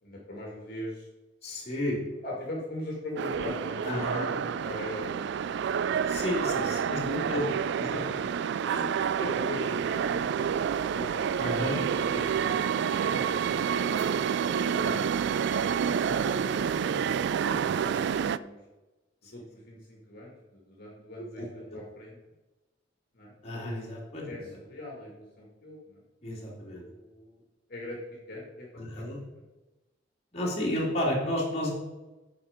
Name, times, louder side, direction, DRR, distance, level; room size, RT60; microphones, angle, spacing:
voice 1, 0.0-1.1 2.2-5.5 6.9-8.3 9.2-11.2 12.1-12.6 13.0-15.3 16.0-17.3 17.9-18.6 19.3-22.2 23.1-23.3 24.3-26.0 26.7-27.4 27.7-28.0 28.3-29.0, left 1 dB, 55° left, -3 dB, 1.8 m, -41 dB
voice 2, 1.4-2.0 3.8-4.3 6.1-7.0 7.3-7.4 7.7-8.0 8.6-8.9 9.2-9.3 11.4-11.8 14.8-15.0 17.4-18.0 21.4-21.8 23.4-24.3 26.2-26.8 28.8-29.2 30.3-31.7, left 1 dB, 35° left, -4 dB, 2.6 m, -32 dB
sound 1, 3.2-18.4, right 7 dB, 65° right, 0.3 m, -28 dB
8.6 x 5.5 x 5.0 m, 1.1 s
head